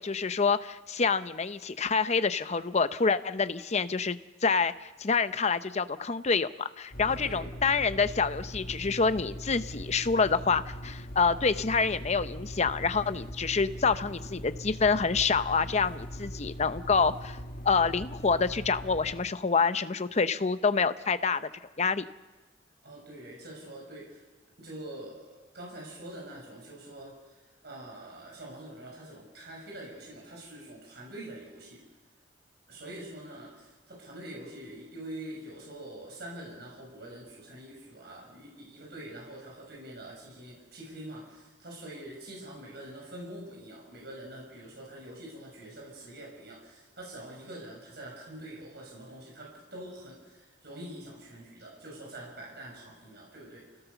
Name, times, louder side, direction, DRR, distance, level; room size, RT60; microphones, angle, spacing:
voice 1, 0.0-17.4 17.6-21.5 21.8-22.0, left 5 dB, 40° left, 12 dB, 0.7 m, -27 dB
sound 1, 6.9-19.3, equal, 55° left, 1.7 m, -41 dB
voice 2, 7.1-7.5 22.8-24.2 24.6-31.8 32.7-53.7, right 1 dB, 60° right, -2 dB, 6.5 m, -45 dB
28.5 x 17.0 x 7.0 m, 1.2 s
head